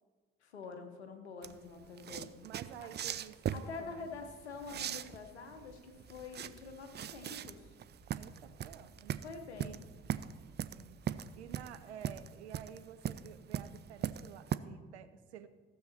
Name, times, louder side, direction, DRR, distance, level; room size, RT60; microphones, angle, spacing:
voice 1, 0.4-2.4 2.8-2.9 3.5-7.7 9.2-9.9, left 4 dB, 85° left, 6 dB, 1.0 m, -46 dB
sound 1, 1.4-14.6, right 9 dB, 30° right, 0.5 m, -40 dB
voice 2, 2.4-3.4 3.8-4.2 8.2-9.2 9.6-9.8 10.7-11.0 11.4-15.5, right 9 dB, 80° right, 11 dB, 0.6 m, -51 dB
sound 2, 4.0-11.7, right 2 dB, 55° right, 3.0 m, -62 dB
15.5 x 7.5 x 4.3 m, 1.4 s
figure-of-eight pair, 45°, 32 cm